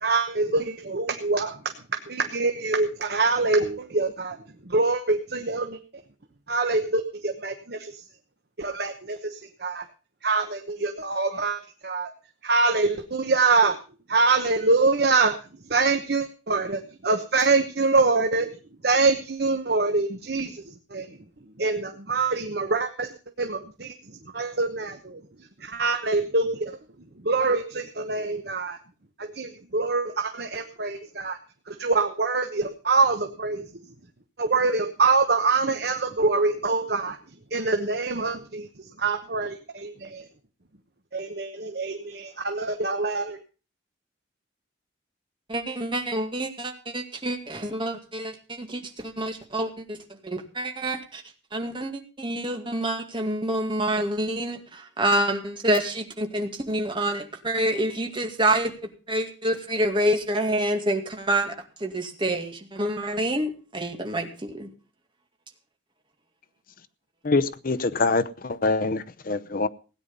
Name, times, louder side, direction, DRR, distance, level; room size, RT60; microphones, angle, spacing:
voice 1, 0.0-1.6 2.1-4.4 4.7-5.8 6.5-7.9 8.6-9.8 10.2-12.1 12.4-13.8 14.1-15.4 15.7-18.5 18.8-20.6 20.9-21.1 21.6-23.1 23.4-23.9 24.3-25.2 25.6-26.8 27.2-28.8 29.2-31.4 31.7-33.6 34.4-37.2 37.5-38.7 39.0-40.3 41.1-43.4, right 3 dB, 60° right, 6 dB, 1.1 m, -24 dB
voice 2, 45.5-51.2 51.5-64.7, right 1 dB, 25° right, 4 dB, 2.2 m, -27 dB
voice 3, 67.2-69.7, left 3 dB, 50° left, 13 dB, 0.7 m, -24 dB
17.0 x 9.6 x 5.4 m, 0.36 s
head